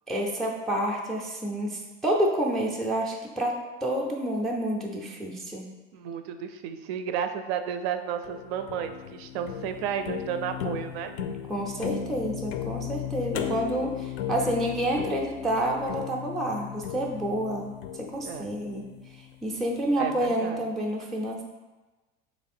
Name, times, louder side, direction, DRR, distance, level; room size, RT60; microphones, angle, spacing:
voice 1, 0.1-5.7 11.5-18.8 19.4-21.4, right 1 dB, ahead, -2 dB, 0.3 m, -29 dB
voice 2, 5.9-11.1 18.2-18.5 20.0-20.6, right 8 dB, 85° right, 8 dB, 0.5 m, -32 dB
sound 1, 8.2-19.4, left 9 dB, 85° left, 0.5 m, -36 dB
3.2 x 3.1 x 4.2 m, 1.2 s
supercardioid pair, 135°, 30 cm